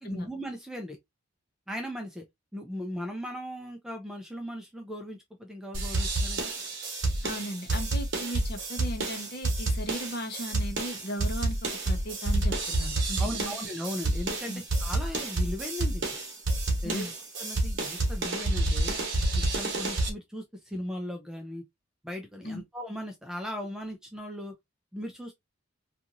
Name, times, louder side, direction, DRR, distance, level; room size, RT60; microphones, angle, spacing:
voice 1, 0.0-1.0 1.7-2.2 2.5-6.5 13.2-16.0 16.8-17.1 17.4-19.0 19.4-21.6 22.0-24.5 24.9-25.3, equal, 5° right, 0.4 m, -38 dB
sound 1, 5.7-20.1, right 2 dB, 60° right, 1.0 m, -29 dB
voice 2, 7.2-11.6 11.8-13.6 14.5-14.6 16.8-17.1 22.4-22.6, equal, 45° left, 0.7 m, -37 dB
2.9 x 2.5 x 2.5 m
head